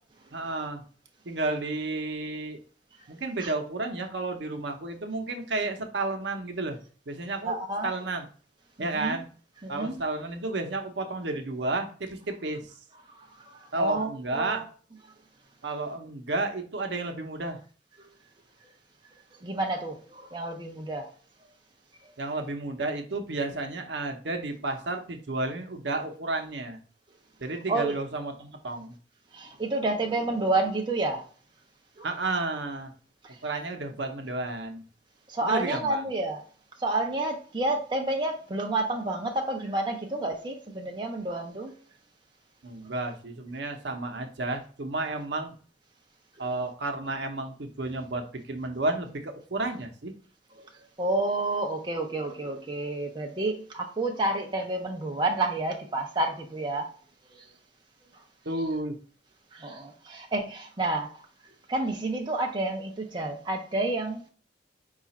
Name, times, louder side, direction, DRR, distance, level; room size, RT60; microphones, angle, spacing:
voice 1, 0.3-0.8 1.2-2.6 3.1-6.8 7.1-7.5 7.8-8.3 8.8-9.3 9.7-12.7 13.7-14.7 15.6-17.6 22.2-26.8 27.4-28.9 32.0-32.9 33.4-34.8 35.4-36.0 42.6-45.5 46.4-50.1 58.4-59.0, right 2 dB, 65° right, 0.7 m, -32 dB
voice 2, 7.5-7.9 8.9-9.2 9.6-9.9 13.1-14.6 19.4-21.1 27.7-28.0 29.3-31.2 32.0-32.1 33.2-33.4 35.3-36.4 36.8-41.7 51.0-56.9 57.4-57.5 59.5-61.2 61.7-64.2, right 2 dB, 25° right, 0.5 m, -29 dB
4.8 x 2.4 x 4.1 m
head